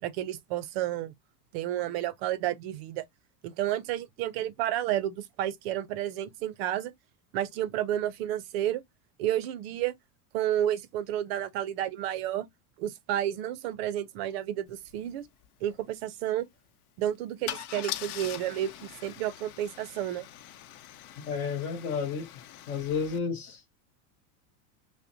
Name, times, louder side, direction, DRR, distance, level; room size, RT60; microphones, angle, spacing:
voice 1, 0.0-1.1 1.5-3.0 3.4-6.9 7.3-8.8 9.2-9.9 10.3-12.5 12.8-15.3 15.6-16.5 17.0-20.3, right 12 dB, 45° right, 0.5 m, -31 dB
Car / Engine starting / Idling, 14.8-14.9 15.2-15.5 17.5-23.2, left 12 dB, 80° left, 0.7 m, -42 dB
voice 2, 21.3-22.3 22.7-23.8, left 6 dB, 35° left, 0.6 m, -31 dB
5.4 x 2.1 x 2.5 m
supercardioid pair, 170°, 45 cm